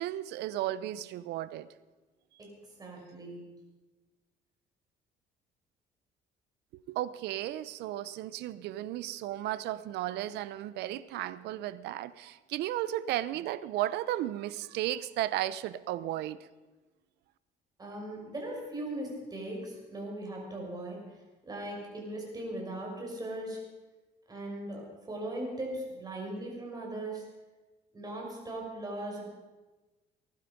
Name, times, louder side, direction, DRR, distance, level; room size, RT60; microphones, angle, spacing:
voice 1, 0.0-1.7 6.7-16.4, right 13 dB, 80° right, 16 dB, 0.7 m, -34 dB
voice 2, 2.8-3.4 17.8-21.2 21.4-23.6 24.3-27.3 27.9-29.2, right 1 dB, 25° right, -1 dB, 5.9 m, -39 dB
20.0 x 11.5 x 5.3 m, 1.2 s
cardioid pair, 110°, 17 cm